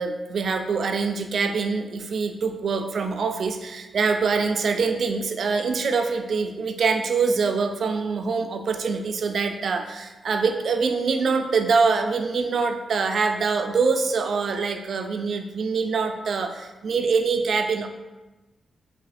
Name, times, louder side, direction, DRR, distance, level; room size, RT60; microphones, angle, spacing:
voice 1, 0.0-17.9, right 4 dB, 55° right, 6 dB, 0.3 m, -24 dB
3.0 x 3.0 x 4.1 m, 1.1 s
wide cardioid pair, 155°, 0 cm